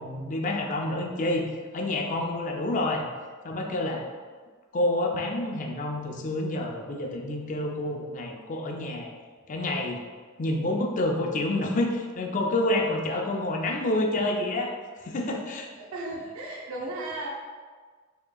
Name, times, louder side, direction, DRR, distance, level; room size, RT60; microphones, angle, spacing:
voice 1, 0.0-1.4 1.7-3.0 3.4-4.1 4.7-9.1 9.5-10.0 10.4-15.7, left 1 dB, 40° left, 1 dB, 0.4 m, -28 dB
voice 2, 15.8-17.3, right 2 dB, 85° right, -2 dB, 0.6 m, -35 dB
4.8 x 2.9 x 2.2 m, 1.5 s
head